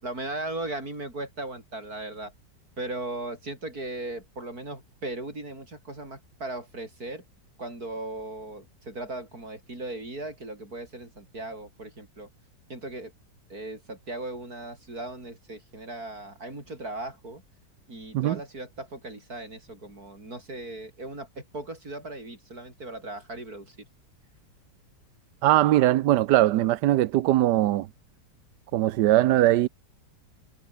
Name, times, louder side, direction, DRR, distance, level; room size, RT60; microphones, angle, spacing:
voice 1, 0.0-2.3 2.8-7.2 7.6-12.3 12.7-13.1 13.5-17.4 17.9-23.8, right 2 dB, 55° right, 7.9 m, -37 dB
voice 2, 25.4-27.9 28.7-29.7, right 14 dB, 75° right, 1.2 m, -21 dB
omnidirectional pair, 1.9 m